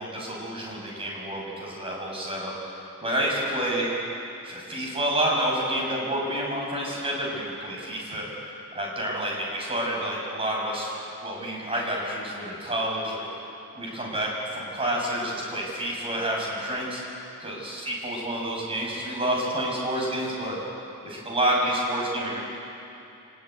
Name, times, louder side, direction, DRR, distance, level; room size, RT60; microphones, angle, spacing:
voice 1, 0.0-4.0 4.4-8.3 8.7-10.9 11.2-13.2 13.7-20.6 21.0-22.4, right 1 dB, 25° right, -2 dB, 6.5 m, -29 dB
25.5 x 20.5 x 9.4 m, 2.8 s
head